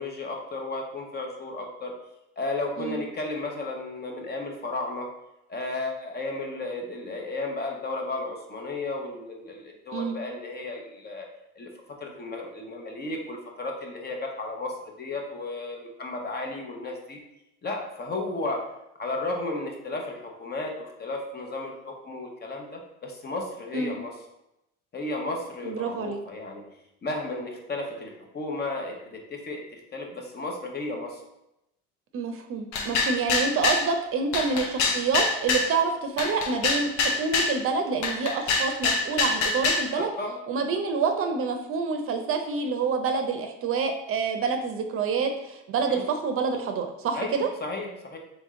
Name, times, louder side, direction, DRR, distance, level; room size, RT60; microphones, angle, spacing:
voice 1, 0.0-1.9 2.4-5.1 5.5-11.3 11.6-11.7 12.0-17.2 17.6-18.6 19.0-24.1 24.9-26.6 27.0-31.2 39.9-40.4 45.9-46.0 47.1-48.2, left 2 dB, 35° left, 2 dB, 0.9 m, -34 dB
voice 2, 25.6-26.2 32.1-40.1 40.5-47.5, right 5 dB, 45° right, 5 dB, 0.6 m, -27 dB
sound 1, 32.7-33.9 34.3-35.7 36.2-37.6 38.0-39.9, left 4 dB, 70° left, 0.8 m, -25 dB
3.5 x 3.2 x 3.6 m, 0.86 s
supercardioid pair, 95°, 30 cm